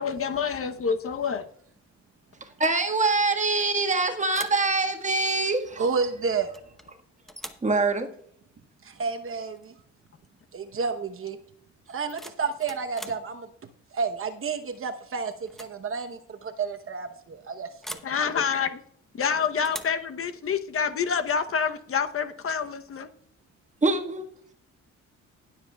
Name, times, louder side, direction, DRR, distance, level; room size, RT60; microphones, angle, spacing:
voice 1, 0.0-1.5 18.0-18.8 19.2-23.1, left 6 dB, 45° left, 9 dB, 0.9 m, -27 dB
voice 2, 2.6-5.8 7.6-8.1 23.8-24.2, right 3 dB, 25° right, 4 dB, 1.6 m, -24 dB
sound 1, 3.6-3.9 4.3-4.7 6.5-6.9 7.3-7.7 9.6-9.7 10.1-10.4 11.9-13.3 14.7-15.0 15.4-15.8 16.0-16.1 17.8-18.2 19.6-20.0, equal, ahead, 0.9 m, -42 dB
voice 3, 5.8-6.5 8.8-9.7 10.5-11.4 11.9-13.5 13.9-18.0, right 5 dB, 45° right, 7 dB, 0.9 m, -30 dB
20.0 x 7.4 x 2.3 m, 0.66 s
cardioid pair, 90°, 30 cm